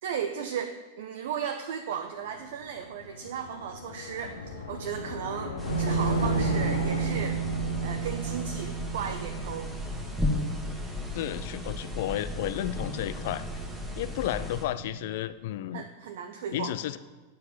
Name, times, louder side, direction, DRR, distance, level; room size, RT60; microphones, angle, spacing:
voice 1, 0.0-7.4 7.8-9.7 15.7-16.8, right 8 dB, 55° right, 6 dB, 0.5 m, -35 dB
sound 1, 2.4-9.8, left 3 dB, 75° left, 1.0 m, -35 dB
sound 2, 5.6-14.7, left 2 dB, 10° right, 1.5 m, -35 dB
sound 3, 5.7-15.1, right 13 dB, 75° right, 1.0 m, -35 dB
voice 2, 11.1-13.4 14.0-15.9 16.5-17.0, left 13 dB, 55° left, 14 dB, 0.3 m, -32 dB
9.6 x 4.7 x 7.0 m, 1.3 s
figure-of-eight pair, 90°, 0 cm